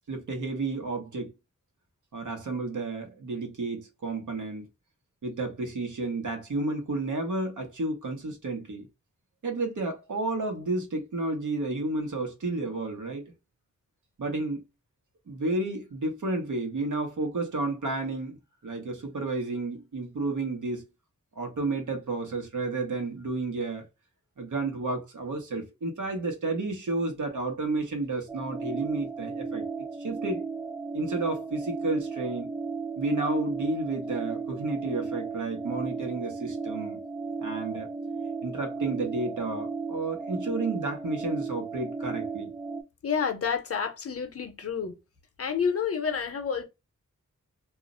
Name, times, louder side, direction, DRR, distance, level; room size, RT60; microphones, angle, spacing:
voice 1, 0.1-1.3 2.1-4.7 5.2-8.9 9.4-13.3 14.2-14.6 15.3-18.4 18.6-20.8 21.4-23.8 24.4-29.6 30.0-30.4 30.9-32.5 33.0-37.0 37.4-37.9 38.4-42.5, right 2 dB, 80° right, 0.9 m, -31 dB
sound 1, 28.3-42.8, right 4 dB, 15° right, 0.5 m, -35 dB
voice 2, 43.0-44.9 45.4-46.6, left 6 dB, 50° left, 0.7 m, -29 dB
2.4 x 2.0 x 3.6 m
wide cardioid pair, 85°, 30 cm